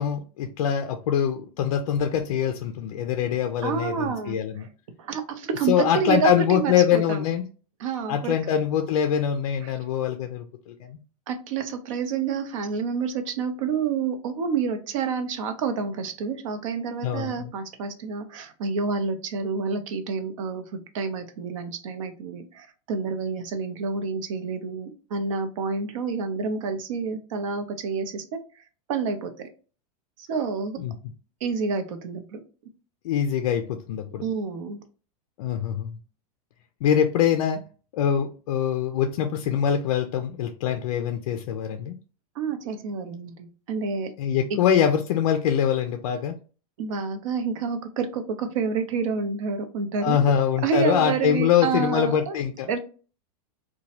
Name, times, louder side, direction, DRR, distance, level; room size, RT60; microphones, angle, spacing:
voice 1, 0.0-4.7 5.7-7.4 8.1-11.0 17.0-17.5 30.8-30.9 33.0-34.2 35.4-36.0 36.8-37.6 37.9-42.0 44.2-46.3 50.0-52.7, left 9 dB, 60° left, 6 dB, 0.4 m, -24 dB
voice 2, 3.6-4.7 5.0-7.2 7.8-8.4 9.6-9.7 11.3-28.4 28.9-29.5 30.3-30.8 31.4-32.4 34.2-34.8 42.4-44.1 44.5-44.6 46.8-50.2 50.6-52.4 52.7-52.8, right 5 dB, 60° right, 7 dB, 0.6 m, -28 dB
2.9 x 2.2 x 2.8 m, 0.37 s
supercardioid pair, 170°, 19 cm